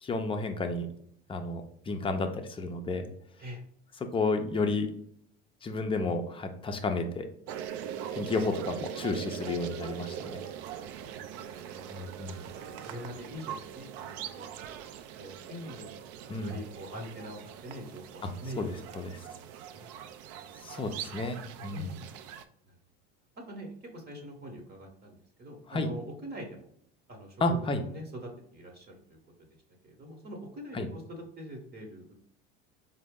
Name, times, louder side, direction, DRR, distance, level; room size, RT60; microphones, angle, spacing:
voice 1, 0.0-0.9 1.3-3.1 4.1-4.9 5.6-7.3 8.1-10.4 11.9-12.4 16.3-16.6 18.2-18.3 18.6-19.2 20.6-21.9 25.7-25.9 27.4-27.8 30.7-30.9, left 3 dB, 20° left, 5 dB, 0.5 m, -31 dB
sound 1, 7.5-22.4, right 9 dB, 55° right, 0.4 m, -42 dB
voice 2, 11.0-12.1 12.6-14.5 15.2-15.9 16.2-19.0 19.3-19.9 21.7-22.1 22.7-22.8 23.5-26.6 27.1-27.4 27.9-29.2 29.8-32.1, equal, 35° right, 1 dB, 1.0 m, -44 dB
4.1 x 2.0 x 3.6 m, 0.67 s
supercardioid pair, 95°, 30 cm